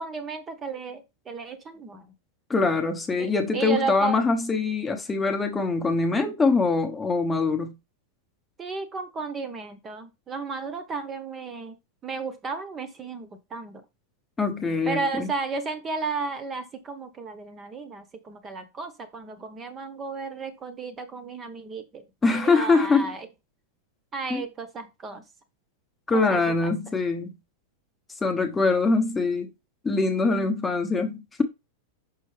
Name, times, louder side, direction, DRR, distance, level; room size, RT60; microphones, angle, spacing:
voice 1, 0.0-2.1 3.2-4.2 8.6-11.8 12.0-13.8 14.9-23.3 24.1-25.2 26.1-26.7, right 4 dB, 20° right, 1.0 m, -34 dB
voice 2, 2.5-7.7 14.4-15.3 22.2-23.1 24.3-24.4 26.1-27.3 28.2-29.5 29.8-31.4, left 3 dB, 10° left, 1.0 m, -23 dB
6.3 x 5.7 x 3.3 m
supercardioid pair, 150°, 0 cm